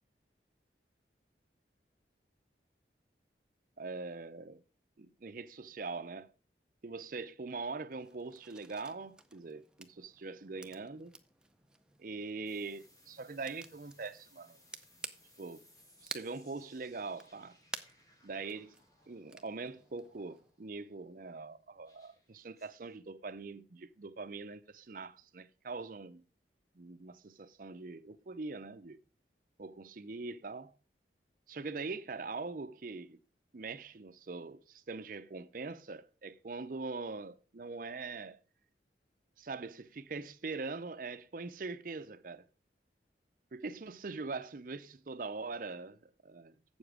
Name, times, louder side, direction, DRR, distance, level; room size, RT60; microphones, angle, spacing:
voice 1, 3.8-4.6 5.0-6.3 6.8-11.2 12.0-14.6 15.4-15.6 16.0-17.6 18.2-18.8 19.1-26.2 26.8-29.0 29.6-30.7 31.5-33.2 33.5-38.4 39.4-42.5 43.5-46.8, right 3 dB, 50° right, 0.6 m, -42 dB
sound 1, 7.9-20.5, right 2 dB, 5° right, 0.5 m, -52 dB
sound 2, 12.4-20.9 21.8-23.0, left 1 dB, 20° left, 1.8 m, -66 dB
7.9 x 7.1 x 4.8 m
head